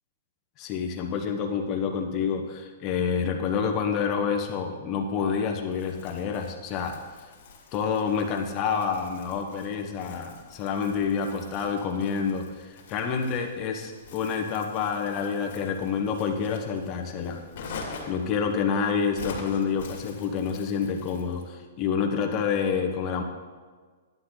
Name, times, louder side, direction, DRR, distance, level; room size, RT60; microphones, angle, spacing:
voice 1, 0.6-7.0 7.7-17.4 18.1-23.2, left 6 dB, 25° left, 2 dB, 1.2 m, -28 dB
Crumpling crinkling, 5.7-21.5, left 4 dB, 50° left, 2.5 m, -45 dB
11.0 x 9.7 x 4.0 m, 1.5 s
hypercardioid pair, 160°, 0 cm